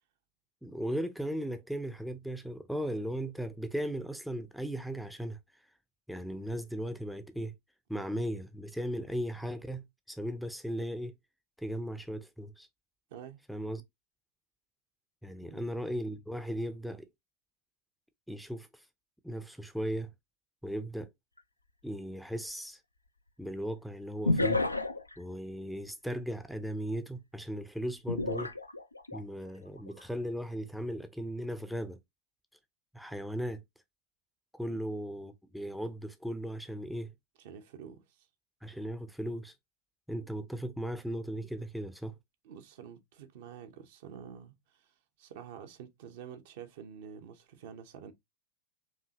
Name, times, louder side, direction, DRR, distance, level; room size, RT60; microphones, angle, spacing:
voice 1, 0.6-5.4 6.1-7.5 7.9-11.1 11.6-12.7 13.5-13.8 15.2-17.1 18.3-18.8 19.2-20.1 20.6-21.1 21.8-22.8 23.4-24.6 25.2-28.5 29.1-32.0 32.9-33.6 34.5-37.1 38.6-39.5 40.1-42.1, equal, ahead, 0.5 m, -37 dB
voice 2, 13.1-13.4 15.5-15.6 34.7-34.8 37.4-38.3 42.4-44.9 45.2-48.1, right 8 dB, 50° right, 0.7 m, -48 dB
sound 1, 21.4-21.5 24.3-25.1 28.1-29.2 29.8-30.0, left 2 dB, 85° left, 0.4 m, -30 dB
4.8 x 2.7 x 2.8 m
figure-of-eight pair, 90°, 0 cm